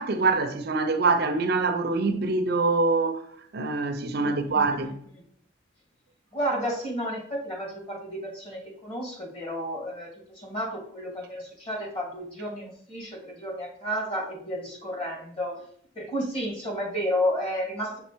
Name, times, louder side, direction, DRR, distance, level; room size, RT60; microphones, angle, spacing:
voice 1, 0.0-3.2 3.5-5.0, right 3 dB, 55° right, 0.6 m, -24 dB
voice 2, 4.1-4.7 6.3-15.6 16.0-18.0, equal, 30° left, 2.1 m, -32 dB
6.1 x 3.8 x 4.5 m
head